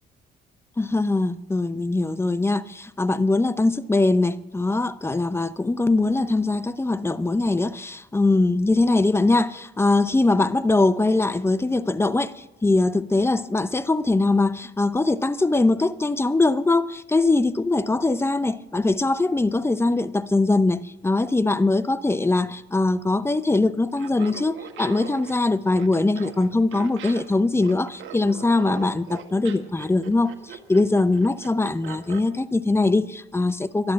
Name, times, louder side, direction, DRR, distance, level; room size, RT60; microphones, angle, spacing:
voice 1, 0.8-33.9, left 2 dB, 10° left, 0.6 m, -22 dB
Laughter, 23.9-32.3, right 8 dB, 75° right, 1.5 m, -41 dB
11.5 x 11.5 x 7.4 m
cardioid pair, 90°, 20 cm